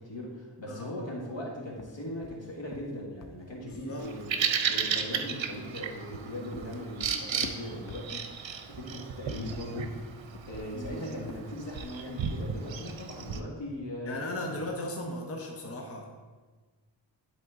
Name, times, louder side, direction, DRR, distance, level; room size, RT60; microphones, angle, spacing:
voice 1, 0.0-4.3 4.7-10.0 10.5-14.2, left 1 dB, 70° left, -2 dB, 1.8 m, -39 dB
sound 1, 1.7-4.3 6.0-8.5 9.4-12.0, left 4 dB, 45° left, 0.4 m, -48 dB
voice 2, 3.5-4.1 4.3-4.5 10.7-11.3 14.0-16.1, left 1 dB, 30° left, 0 dB, 0.9 m, -37 dB
Bird vocalization bird call bird song, 4.0-13.4, right 6 dB, 75° right, 0.7 m, -34 dB
11.0 x 4.2 x 3.7 m, 1.4 s
wide cardioid pair, 105°, 46 cm